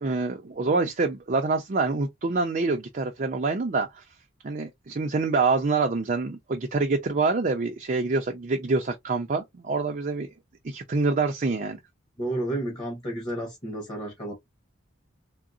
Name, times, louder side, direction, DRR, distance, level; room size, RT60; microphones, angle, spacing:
voice 1, 0.0-4.0 4.4-10.3 10.6-11.8, right 3 dB, 40° right, 0.5 m, -26 dB
voice 2, 12.2-14.3, right 1 dB, 25° left, 1.0 m, -31 dB
3.7 x 2.0 x 2.4 m
head